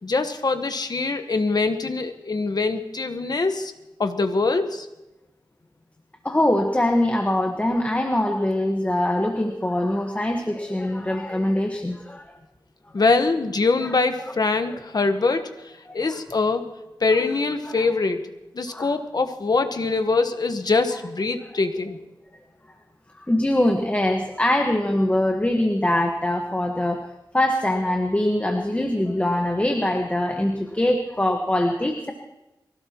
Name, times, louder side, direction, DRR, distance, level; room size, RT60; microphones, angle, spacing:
voice 1, 0.0-3.7 4.0-4.9 12.9-15.5 15.9-16.7 17.0-18.3 18.5-22.0, left 3 dB, 55° left, 7 dB, 1.3 m, -23 dB
voice 2, 6.2-12.3 13.8-14.0 15.9-16.2 17.6-17.9 18.7-18.9 23.1-27.1 27.3-32.1, left 1 dB, 15° left, 2 dB, 1.4 m, -23 dB
23.5 x 16.5 x 3.0 m, 0.97 s
wide cardioid pair, 75°, 8 cm